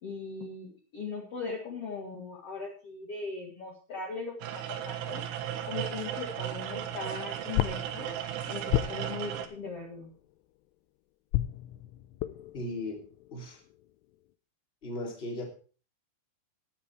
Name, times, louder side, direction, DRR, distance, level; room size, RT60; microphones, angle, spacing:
voice 1, 0.0-5.2 5.7-8.1 8.5-10.1, left 4 dB, 50° left, 0 dB, 1.9 m, -39 dB
sound 1, 4.4-9.5, right 10 dB, 75° right, 3.9 m, -35 dB
sound 2, 6.6-10.7 11.3-14.3, left 14 dB, 85° left, 3.3 m, -35 dB
voice 2, 12.5-13.0 13.3-13.6 14.8-15.4, left 1 dB, 15° left, 1 dB, 2.3 m, -36 dB
12.5 x 10.0 x 4.7 m, 0.39 s
omnidirectional pair, 5.6 m